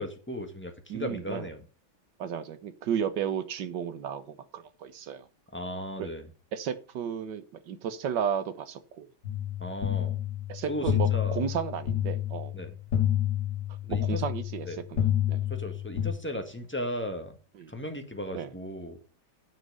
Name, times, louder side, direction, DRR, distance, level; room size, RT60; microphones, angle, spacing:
voice 1, 0.0-1.6 5.5-6.3 9.6-10.2 10.7-11.4 12.5-12.7 13.8-14.2 14.7-14.8 15.5-17.3 17.7-19.0, equal, 5° left, 5 dB, 1.4 m, -36 dB
voice 2, 0.9-1.4 2.2-5.2 6.0-6.1 6.5-9.1 10.5-12.5 13.9-15.4 17.5-17.7 18.3-18.5, right 8 dB, 60° right, 12 dB, 1.6 m, -33 dB
sound 1, 9.2-16.1, left 11 dB, 60° left, 2.6 m, -29 dB
9.7 x 6.0 x 6.7 m, 0.36 s
omnidirectional pair, 2.2 m